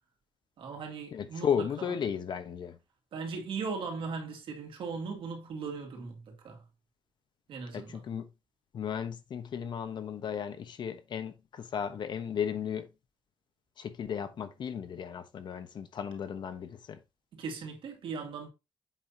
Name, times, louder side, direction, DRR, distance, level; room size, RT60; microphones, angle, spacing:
voice 1, 0.6-1.9 3.1-6.6 7.5-8.0 17.3-18.5, right 5 dB, 90° right, 2.2 m, -38 dB
voice 2, 1.1-2.8 7.7-8.3 8.7-12.9 13.8-17.0, left 8 dB, 60° left, 1.0 m, -35 dB
7.7 x 5.7 x 2.8 m
wide cardioid pair, 140°, 9 cm